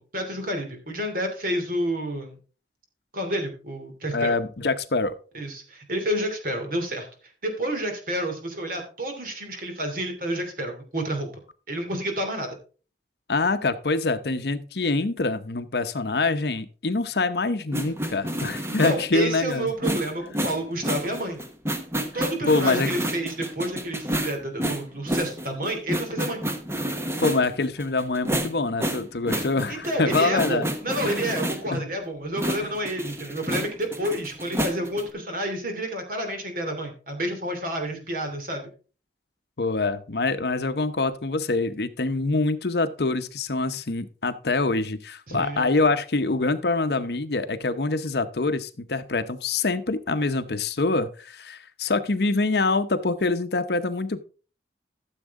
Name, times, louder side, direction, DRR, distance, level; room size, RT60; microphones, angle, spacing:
voice 1, 0.1-2.4 3.1-4.4 5.3-7.1 7.4-11.3 11.7-12.6 18.7-21.4 22.1-26.4 29.7-38.6 45.3-45.7, right 1 dB, 50° right, 2.8 m, -29 dB
voice 2, 4.1-5.2 13.3-19.7 22.5-23.0 27.2-30.7 31.0-31.3 31.7-31.9 32.6-32.7 39.6-54.2, left 3 dB, 65° left, 0.8 m, -25 dB
sound 1, 17.7-31.7 32.4-35.1, right 1 dB, 15° right, 1.0 m, -29 dB
13.5 x 7.3 x 3.6 m
head